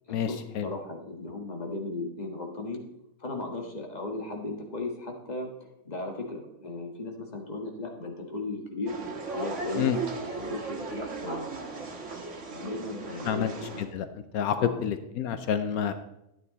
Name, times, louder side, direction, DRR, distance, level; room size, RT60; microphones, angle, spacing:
voice 1, 0.1-2.8 3.2-9.0 9.3-10.0 10.3-12.2 12.5-13.7 14.6-14.8, left 2 dB, 30° left, 2 dB, 1.7 m, -36 dB
sound 1, 8.9-13.8, right 4 dB, 55° right, 1.7 m, -37 dB
voice 2, 14.3-15.9, left 9 dB, 85° left, 10 dB, 1.2 m, -28 dB
11.0 x 9.4 x 4.1 m, 0.86 s
omnidirectional pair, 1.5 m